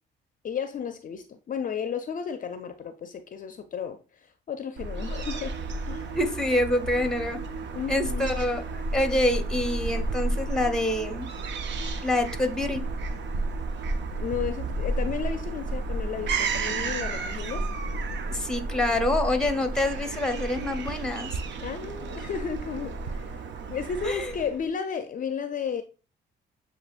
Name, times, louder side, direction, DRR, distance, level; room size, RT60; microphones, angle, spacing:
voice 1, 0.4-5.6 5.9-6.2 7.7-8.4 14.1-17.7 21.6-23.4 23.7-25.8, left 7 dB, 45° left, 0.5 m, -33 dB
Fowl / Gull seagull, 4.8-24.6, right 3 dB, 65° right, 0.6 m, -32 dB
voice 2, 6.1-7.4 7.9-11.3 12.0-12.8 18.3-21.3 24.0-24.3, left 1 dB, 5° left, 0.8 m, -26 dB
7.4 x 2.9 x 2.4 m
cardioid pair, 90°, 20 cm